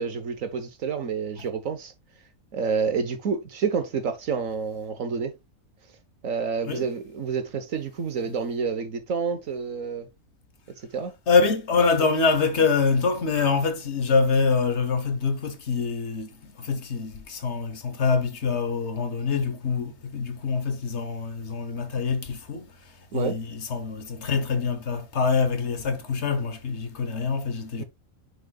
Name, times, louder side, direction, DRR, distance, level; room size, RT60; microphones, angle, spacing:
voice 1, 0.0-1.9 2.5-5.3 6.2-10.1 10.9-11.1 23.1-23.4 27.8-27.9, right 5 dB, 65° right, 1.6 m, -28 dB
voice 2, 11.3-27.8, left 4 dB, 50° left, 1.4 m, -25 dB
10.5 x 5.1 x 2.4 m
omnidirectional pair, 1.5 m